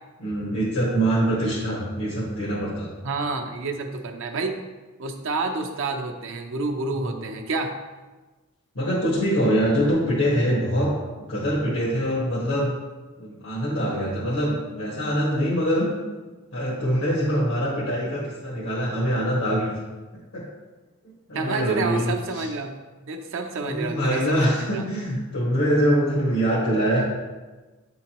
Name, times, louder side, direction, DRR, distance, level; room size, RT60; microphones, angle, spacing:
voice 1, 0.2-2.9 6.9-7.2 8.7-10.9 11.2-12.7 13.2-15.9 16.5-19.7 20.3-20.4 21.3-22.5 23.6-27.0, equal, 85° left, -9 dB, 1.7 m, -24 dB
voice 2, 3.0-4.6 5.0-7.8 21.3-22.8 23.1-24.9, right 3 dB, 60° right, 3 dB, 0.6 m, -29 dB
9.1 x 3.8 x 3.0 m, 1.2 s
head